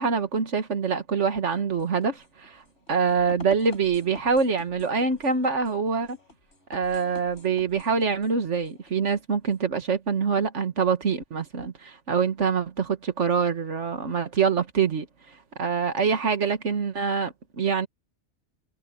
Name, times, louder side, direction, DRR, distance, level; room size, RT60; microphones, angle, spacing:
voice 1, 0.0-2.6 2.9-6.2 6.7-15.1 15.6-17.9, right 5 dB, 90° right, 2.0 m, -25 dB
sound 1, 1.5-9.7, left 2 dB, 80° left, 4.2 m, -49 dB
omnidirectional pair, 1.2 m